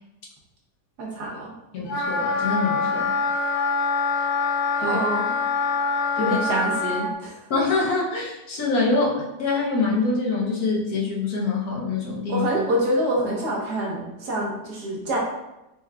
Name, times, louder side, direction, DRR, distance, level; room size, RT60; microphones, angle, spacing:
voice 1, 1.0-1.5 4.8-5.3 6.2-7.4 12.3-15.2, right 1 dB, 65° right, -3 dB, 1.4 m, -26 dB
voice 2, 1.7-3.1 4.8-5.0 6.2-6.4 7.5-12.5, left 3 dB, 65° left, -3 dB, 1.1 m, -25 dB
Wind instrument woodwind instrument, 1.9-7.1, left 4 dB, 90° left, 1.4 m, -24 dB
4.7 x 2.9 x 2.2 m, 0.94 s
omnidirectional pair, 2.0 m